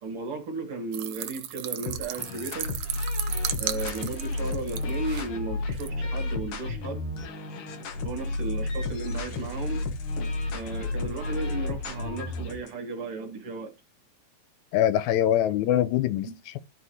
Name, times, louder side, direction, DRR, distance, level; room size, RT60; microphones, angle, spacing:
voice 1, 0.0-2.7 3.6-7.1 8.0-9.9 10.5-13.7 16.2-16.3, right 3 dB, 55° right, 2.1 m, -35 dB
sound 1, 0.9-5.3 5.7-5.9, right 12 dB, 75° right, 1.4 m, -35 dB
sound 2, 1.8-12.7, left 2 dB, 60° left, 1.7 m, -32 dB
voice 2, 14.7-16.6, left 11 dB, 85° left, 2.0 m, -24 dB
12.5 x 4.6 x 2.7 m
omnidirectional pair, 3.3 m